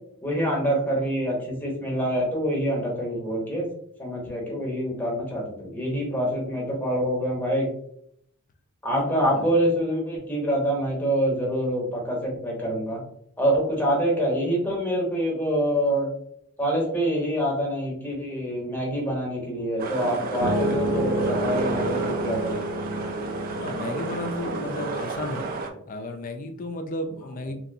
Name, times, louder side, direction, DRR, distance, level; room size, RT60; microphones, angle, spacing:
voice 1, 0.2-3.7 4.0-7.7 8.8-13.0 13.4-16.1 16.6-22.6, equal, 10° left, -2 dB, 0.8 m, -26 dB
voice 2, 8.9-9.5 23.5-25.5 25.9-27.5, left 2 dB, 35° left, 5 dB, 0.3 m, -33 dB
sound 1, 19.8-25.7, right 3 dB, 40° right, 0.3 m, -31 dB
sound 2, 20.4-25.6, right 1 dB, 75° right, 0.7 m, -30 dB
3.0 x 2.6 x 2.6 m, 0.69 s
head